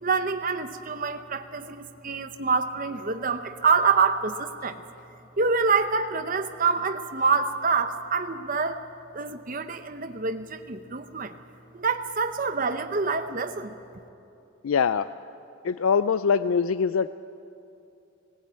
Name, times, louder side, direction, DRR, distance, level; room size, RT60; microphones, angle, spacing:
voice 1, 0.0-4.8 5.4-8.8 9.1-11.4 11.7-13.8, right 5 dB, 40° right, 8 dB, 0.8 m, -26 dB
voice 2, 14.6-15.1 15.6-17.1, left 6 dB, 85° left, 14 dB, 0.4 m, -23 dB
19.0 x 18.5 x 8.9 m, 2.7 s
head